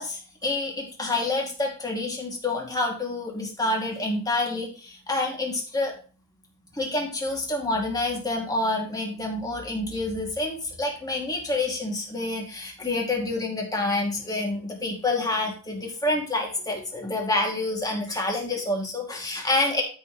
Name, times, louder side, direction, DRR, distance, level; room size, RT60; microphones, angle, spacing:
voice 1, 0.0-5.9 6.7-19.8, left 2 dB, 20° left, 1 dB, 2.4 m, -28 dB
12.5 x 6.3 x 3.1 m, 0.38 s
head